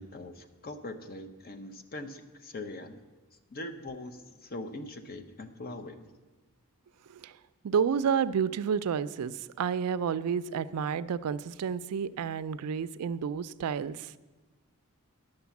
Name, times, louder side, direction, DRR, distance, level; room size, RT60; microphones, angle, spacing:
voice 1, 0.0-3.0 3.5-6.1, left 2 dB, 40° left, 9 dB, 0.7 m, -42 dB
voice 2, 7.6-14.1, right 7 dB, 90° right, 15 dB, 0.4 m, -30 dB
10.5 x 6.6 x 7.1 m, 1.2 s
head